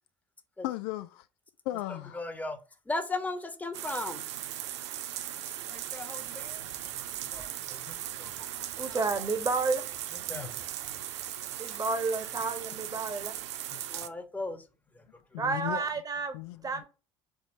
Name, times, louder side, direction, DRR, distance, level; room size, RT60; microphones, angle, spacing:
voice 1, 0.6-1.3 1.7-2.2 10.3-10.5 13.7-13.8 15.3-15.9 16.3-16.9, left 16 dB, 55° left, 0.5 m, -36 dB
voice 2, 2.1-2.6 2.9-4.2 5.7-6.7 7.3-8.5 8.8-9.3 10.3-10.6 13.9-14.6 14.9-15.0, left 2 dB, 10° left, 1.2 m, -37 dB
sound 1, 3.7-14.1, right 11 dB, 65° right, 0.6 m, -38 dB
voice 3, 8.8-9.8 11.6-13.4 15.4-16.4 16.6-16.9, right 4 dB, 25° right, 1.3 m, -31 dB
4.8 x 3.8 x 5.3 m
figure-of-eight pair, 60°, 15 cm